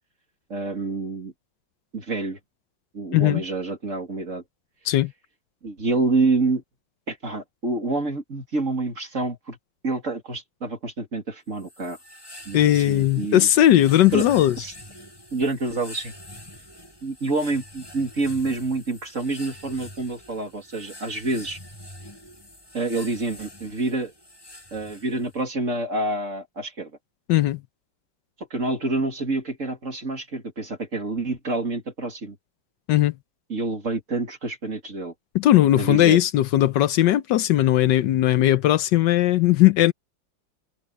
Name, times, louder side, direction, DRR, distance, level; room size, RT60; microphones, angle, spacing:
voice 1, 0.5-1.3 1.9-2.4 2.9-4.4 5.6-6.6 7.1-9.6 9.8-12.0 12.5-13.5 14.1-14.3 14.6-14.7 15.3-16.1 17.0-21.6 22.7-24.1 24.7-26.9 28.4-32.4 33.5-35.1 35.8-36.2, right 3 dB, 40° right, 3.1 m, -27 dB
sound 1, 11.6-25.4, left 1 dB, 15° left, 2.1 m, -45 dB
voice 2, 12.5-14.6 27.3-27.6 32.9-33.1 35.3-39.9, left 13 dB, 75° left, 1.3 m, -18 dB
omnidirectional pair, 2.0 m